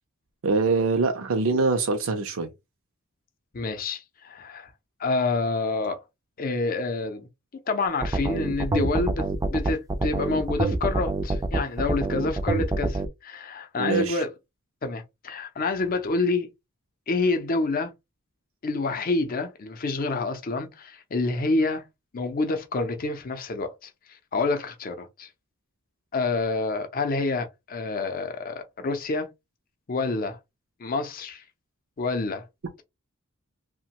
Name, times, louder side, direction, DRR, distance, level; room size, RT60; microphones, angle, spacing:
voice 1, 0.4-2.5 13.8-14.2, right 3 dB, 75° right, 0.5 m, -24 dB
voice 2, 3.5-4.7 5.0-6.0 6.4-7.3 7.7-14.3 14.8-16.5 17.1-17.9 18.6-21.9 22.1-23.9 24.3-25.3 26.1-29.3 29.9-30.4 30.8-31.4 32.0-32.4, left 3 dB, 45° left, 0.5 m, -28 dB
sound 1, 8.0-13.1, right 2 dB, 15° right, 0.4 m, -26 dB
2.9 x 2.2 x 2.8 m
head